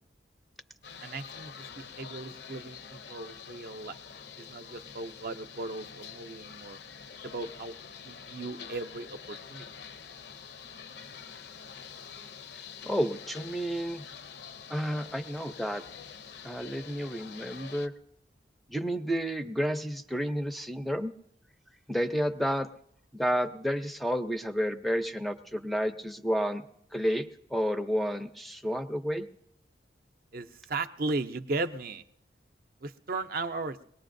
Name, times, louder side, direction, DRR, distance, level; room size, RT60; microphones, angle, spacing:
sound 1, 0.8-17.9, left 7 dB, 65° left, 0.5 m, -46 dB
voice 1, 1.0-4.0 4.4-6.8 7.2-7.7 8.0-9.7 30.3-32.0 32.8-33.8, right 3 dB, 50° right, 10 dB, 0.5 m, -36 dB
voice 2, 12.5-14.1 14.7-15.8 16.4-17.9 18.7-21.1 21.9-22.7 23.1-26.6 26.9-29.3, equal, ahead, 8 dB, 0.4 m, -31 dB
22.0 x 19.0 x 2.6 m, 0.78 s
head